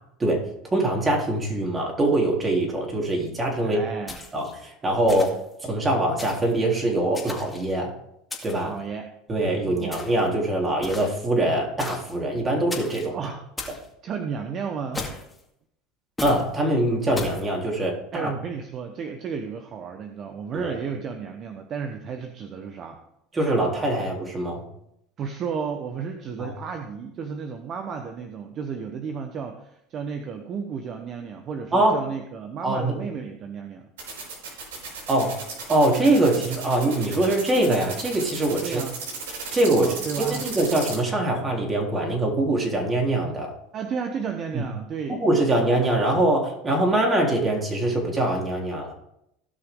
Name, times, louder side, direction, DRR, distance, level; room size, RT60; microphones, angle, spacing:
voice 1, 0.7-3.8 4.3-5.3 5.6-7.9 8.4-8.7 9.3-13.2 16.2-18.3 20.5-20.7 23.3-24.6 26.4-26.5 31.7-32.0 32.6-32.9 35.1-35.4 35.7-38.8 39.5-39.9 40.3-43.5 44.5-44.6 45.2-48.9, right 1 dB, 25° right, -1 dB, 3.5 m, -23 dB
voice 2, 3.6-4.2 8.7-9.1 9.7-10.0 13.1-13.4 14.0-15.1 18.1-23.0 25.2-33.9 38.6-39.0 39.7-40.5 43.7-45.2, right 6 dB, 45° right, 6 dB, 1.1 m, -33 dB
sound 1, 4.1-4.5 5.1-5.5 6.2-6.5 7.1-7.7 8.3-8.7 9.9-10.3 10.8-11.3 11.8-12.2 12.7-13.1 13.6-13.9 14.9-15.4 16.2-16.5 17.2-17.4, left 3 dB, 10° left, 2.2 m, -36 dB
sound 2, 34.0-41.0, right 5 dB, 85° right, 4.5 m, -35 dB
16.5 x 6.0 x 3.8 m, 0.79 s
hypercardioid pair, 95°, 0 cm